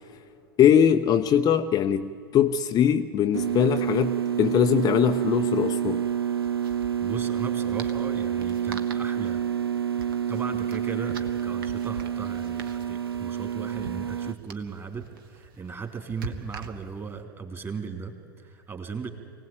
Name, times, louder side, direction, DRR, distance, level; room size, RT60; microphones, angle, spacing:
voice 1, 0.6-6.0, left 9 dB, 30° left, 0.7 m, -21 dB
sound 1, 3.3-14.3, right 9 dB, 90° right, 0.5 m, -28 dB
sound 2, 6.0-17.2, right 4 dB, 65° right, 1.6 m, -44 dB
voice 2, 7.0-9.4 10.3-19.1, right 5 dB, 20° right, 3.2 m, -37 dB
24.5 x 18.0 x 8.7 m
figure-of-eight pair, 90°, 12 cm